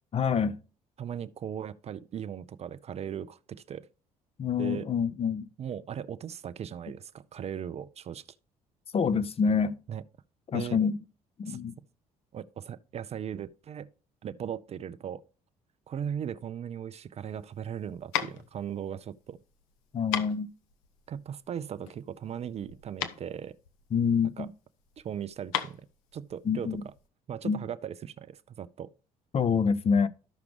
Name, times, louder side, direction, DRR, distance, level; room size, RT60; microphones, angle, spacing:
voice 1, 0.1-0.6 4.4-5.5 8.9-9.8 10.5-11.0 11.4-11.7 19.9-20.5 23.9-24.5 26.5-26.8 27.4-27.6 29.3-30.1, left 6 dB, 30° left, 0.6 m, -26 dB
voice 2, 1.0-3.9 4.6-4.9 5.6-8.2 9.9-10.0 10.5-10.8 11.4-11.6 12.3-13.9 14.2-15.2 15.9-19.4 21.1-23.5 24.4-24.5 25.0-25.8 26.1-26.9 27.3-28.9, right 9 dB, 35° right, 0.5 m, -38 dB
sound 1, 17.2-27.0, left 11 dB, 65° left, 0.7 m, -38 dB
13.0 x 5.8 x 3.3 m
figure-of-eight pair, 50°, 19 cm